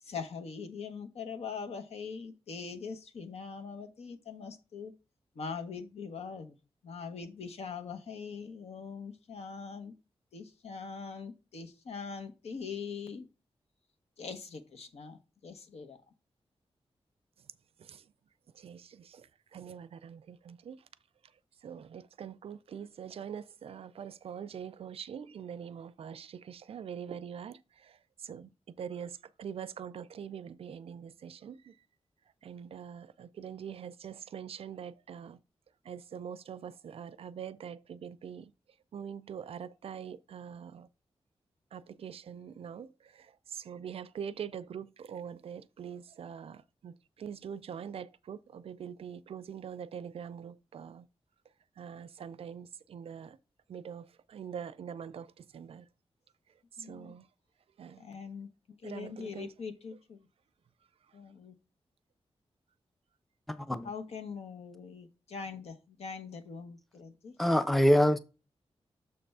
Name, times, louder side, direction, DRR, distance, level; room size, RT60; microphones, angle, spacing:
voice 1, 0.0-4.9 5.3-6.6 6.8-9.9 10.3-13.3 14.2-16.0 56.8-57.1 58.0-58.5 58.8-60.3 61.1-61.6 63.8-67.3, left 5 dB, 85° left, 1.0 m, -42 dB
voice 2, 18.6-20.8 21.6-28.5 28.8-31.7 32.4-35.4 35.9-38.5 38.9-40.9 41.7-51.1 51.8-53.4 53.7-55.9 56.8-57.3 57.8-58.0 58.8-59.5, right 8 dB, 65° right, 0.4 m, -44 dB
voice 3, 63.5-63.9 67.4-68.2, equal, ahead, 0.4 m, -24 dB
6.8 x 3.4 x 5.3 m
wide cardioid pair, 175°, 11 cm